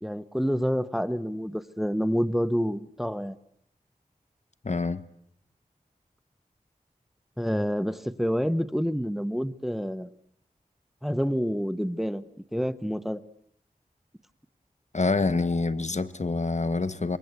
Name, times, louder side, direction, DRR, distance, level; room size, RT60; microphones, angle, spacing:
voice 1, 0.0-3.4 7.4-10.1 11.0-12.2 12.5-13.2, equal, ahead, 1.1 m, -28 dB
voice 2, 4.6-5.0 14.9-17.2, left 3 dB, 50° left, 1.1 m, -26 dB
26.0 x 22.5 x 8.3 m
wide cardioid pair, 45°, 15 cm